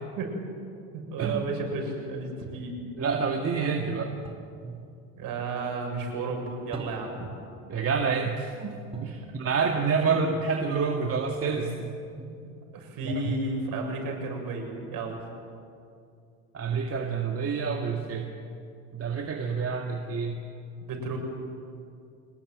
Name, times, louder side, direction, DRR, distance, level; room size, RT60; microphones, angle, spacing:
voice 1, 0.9-2.8 5.2-7.3 9.4-10.2 12.7-15.2 20.8-21.2, right 3 dB, 50° right, 2 dB, 7.3 m, -33 dB
voice 2, 3.0-4.2 4.6-4.8 7.7-12.5 13.0-13.3 16.5-18.3 18.9-20.4, right 5 dB, 35° right, 2 dB, 2.2 m, -28 dB
sound 1, 4.2-4.6 6.7-7.3 8.9-9.3 11.3-11.9, right 2 dB, 15° right, 4.3 m, -42 dB
24.5 x 20.5 x 9.2 m, 2.5 s
hypercardioid pair, 70°, 42 cm